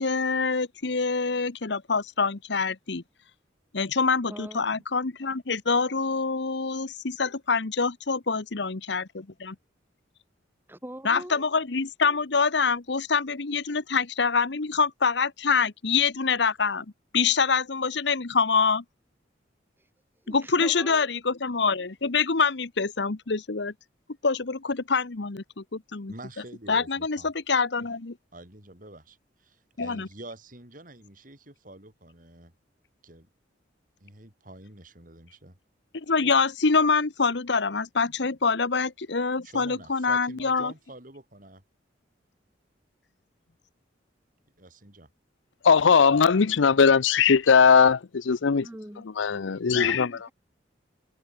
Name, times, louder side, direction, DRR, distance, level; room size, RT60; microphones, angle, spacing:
voice 1, 0.0-3.0 3.7-9.5 11.0-16.8 17.1-18.8 20.3-23.7 24.2-26.1 26.7-28.1 29.8-30.1 35.9-40.7, left 5 dB, 65° left, 1.0 m, -25 dB
voice 2, 4.3-4.8 10.7-11.4 20.2-21.1 48.5-49.1 49.7-50.3, right 1 dB, 10° right, 2.3 m, -42 dB
voice 3, 26.1-27.3 28.3-32.5 33.0-33.3 34.0-35.6 39.4-41.6 44.6-45.1 49.6-50.0, right 2 dB, 45° right, 4.3 m, -46 dB
voice 4, 45.6-48.6 49.2-50.1, left 6 dB, 85° left, 0.6 m, -19 dB
head